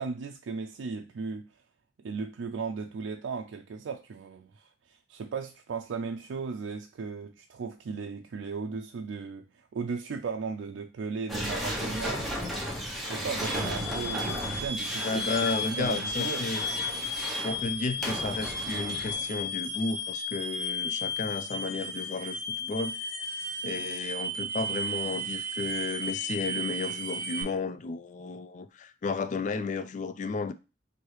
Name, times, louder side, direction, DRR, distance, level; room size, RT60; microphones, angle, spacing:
voice 1, 0.0-1.5 2.0-12.6 13.0-16.4, right 5 dB, 85° right, 0.4 m, -36 dB
sound 1, 11.3-19.4, equal, ahead, 0.8 m, -35 dB
sound 2, 13.4-27.4, left 1 dB, 60° left, 1.4 m, -34 dB
voice 2, 15.0-16.6 17.4-22.9 23.6-30.5, left 4 dB, 40° left, 0.3 m, -33 dB
4.6 x 2.7 x 3.1 m
head